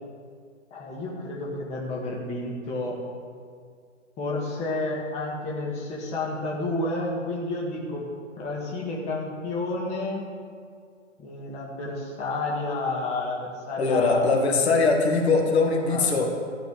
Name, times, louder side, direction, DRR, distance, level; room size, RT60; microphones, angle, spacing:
voice 1, 0.7-3.0 4.2-8.1 8.4-10.3 11.2-14.3 15.9-16.1, left 2 dB, 15° left, -4 dB, 1.9 m, -30 dB
voice 2, 13.8-16.3, left 4 dB, 55° left, 1 dB, 2.1 m, -21 dB
13.5 x 6.0 x 9.0 m, 2.1 s
figure-of-eight pair, 135°, 39 cm